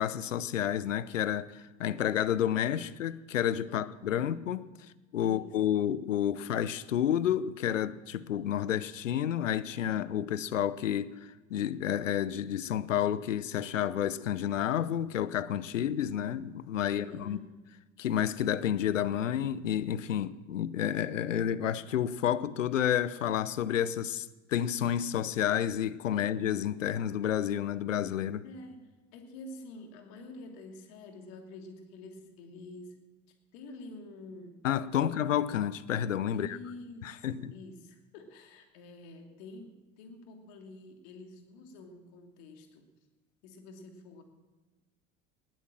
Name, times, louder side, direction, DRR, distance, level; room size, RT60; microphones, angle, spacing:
voice 1, 0.0-4.6 5.1-17.4 18.0-28.5 34.6-36.6 37.0-37.5, left 10 dB, 75° left, 0.8 m, -30 dB
voice 2, 3.6-4.3 5.2-5.6 16.8-17.5 26.1-26.2 28.4-33.0 33.3-34.6 36.3-42.9 43.4-44.2, left 2 dB, 55° left, 2.9 m, -48 dB
19.5 x 9.1 x 7.6 m
figure-of-eight pair, 70°, 38 cm